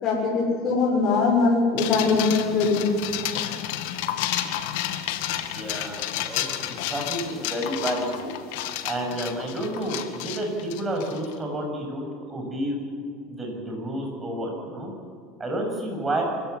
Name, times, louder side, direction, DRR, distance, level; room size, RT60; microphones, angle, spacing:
voice 1, 0.0-2.9, left 4 dB, 40° left, -2 dB, 6.5 m, -21 dB
sound 1, 1.8-11.3, left 12 dB, 80° left, 2.0 m, -31 dB
voice 2, 5.5-8.3 8.8-12.8 13.3-14.9 15.4-16.2, right 1 dB, 15° right, 1 dB, 7.6 m, -30 dB
25.0 x 15.5 x 9.9 m, 2.2 s
supercardioid pair, 125°, 0 cm